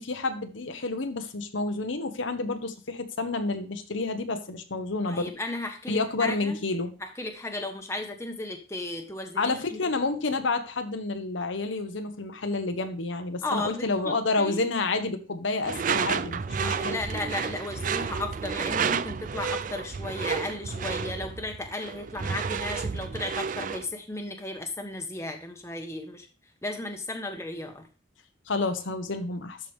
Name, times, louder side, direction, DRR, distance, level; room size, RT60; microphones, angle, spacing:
voice 1, 0.0-5.3 5.9-6.9 9.4-17.0 28.5-29.6, left 3 dB, 75° left, 7 dB, 1.0 m, -29 dB
voice 2, 5.1-6.6 7.0-9.8 13.4-14.6 16.6-26.3 26.6-27.8, left 2 dB, 15° left, 4 dB, 1.1 m, -35 dB
Door / Screech, 15.6-23.9, right 6 dB, 40° right, 0.4 m, -31 dB
12.5 x 4.8 x 3.5 m, 0.33 s
head